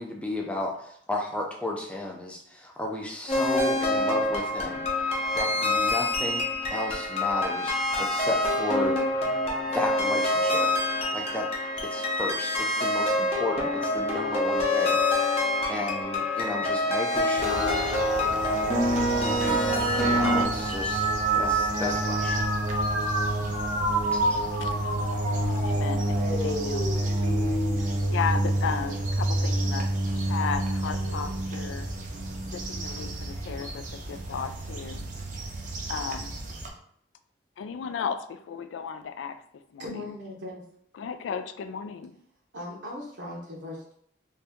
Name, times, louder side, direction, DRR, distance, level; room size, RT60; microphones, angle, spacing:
voice 1, 0.0-4.9 5.3-9.0 9.7-10.7 11.1-11.5 11.8-15.0 15.7-17.8 19.2-21.1 21.3-22.4 24.1-24.5, left 1 dB, 5° left, 0 dB, 0.4 m, -33 dB
sound 1, 3.3-20.4, left 1 dB, 35° left, 0.7 m, -26 dB
sound 2, 17.4-36.7, right 1 dB, 45° right, 0.5 m, -30 dB
sound 3, 19.4-29.0 29.5-30.0 31.0-31.4, right 2 dB, 70° left, 0.8 m, -30 dB
voice 2, 25.6-26.9 27.2-27.3 28.1-29.9 30.1-31.9 32.5-35.0 35.9-36.4 37.6-39.4 39.7-40.1 40.9-42.1, left 6 dB, 85° left, 10 dB, 0.3 m, -34 dB
voice 3, 39.8-40.6 42.5-43.9, left 1 dB, 70° right, -3 dB, 0.8 m, -38 dB
2.8 x 2.6 x 3.4 m, 0.65 s
head